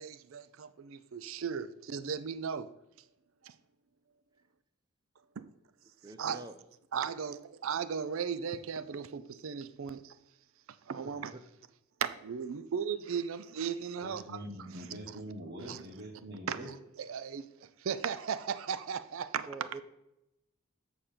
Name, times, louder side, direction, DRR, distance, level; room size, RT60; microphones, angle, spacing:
voice 1, 0.0-2.7 3.4-3.5 5.4-5.5 6.2-6.4 6.9-10.1 10.9-11.3 12.0-15.0 15.6-15.8 16.5-19.5, right 7 dB, 70° right, 0.4 m, -37 dB
voice 2, 6.0-6.6 11.0-11.4 19.5-19.8, right 3 dB, 20° right, 0.6 m, -46 dB
voice 3, 14.0-16.7, equal, 50° right, 1.3 m, -44 dB
7.6 x 4.3 x 6.7 m
head